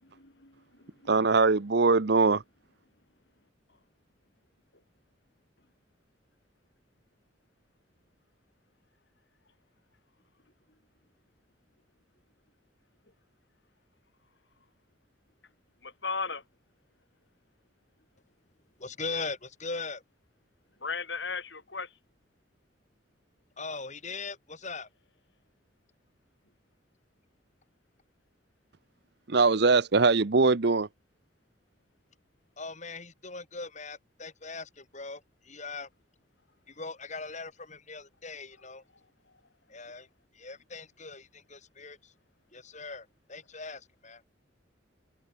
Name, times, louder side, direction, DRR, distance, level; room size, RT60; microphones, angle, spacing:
voice 1, 0.0-1.1 15.8-16.4 20.8-21.9, left 4 dB, 65° left, 5.3 m, -36 dB
voice 2, 1.1-2.4 29.3-30.9, right 4 dB, 60° right, 0.8 m, -22 dB
voice 3, 18.8-20.0 23.6-24.9 32.6-35.9 36.7-38.8 39.7-40.1 40.3-42.1 42.5-44.2, left 4 dB, 40° left, 6.3 m, -40 dB
head